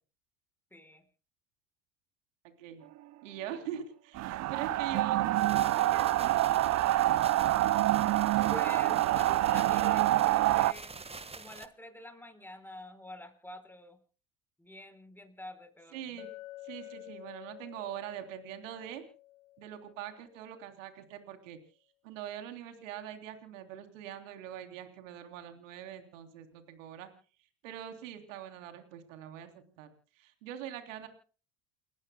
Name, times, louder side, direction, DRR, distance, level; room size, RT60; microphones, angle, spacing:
voice 1, 0.7-1.0 8.5-11.0 11.3-14.0 14.6-16.2, left 1 dB, 5° left, 8 dB, 4.7 m, -47 dB
voice 2, 3.2-5.3 5.6-6.4 15.9-16.3 16.6-19.0 19.6-21.6 22.0-27.1 27.6-31.1, right 10 dB, 80° right, 7 dB, 3.4 m, -43 dB
sound 1, 4.1-10.7, right 15 dB, 45° right, 0.7 m, -26 dB
sound 2, 5.3-11.7, right 4 dB, 15° right, 1.5 m, -46 dB
Chink clink, 16.2-20.6, left 16 dB, 90° left, 1.3 m, -50 dB
29.5 x 15.5 x 2.2 m, 0.38 s
hypercardioid pair, 80°, 38 cm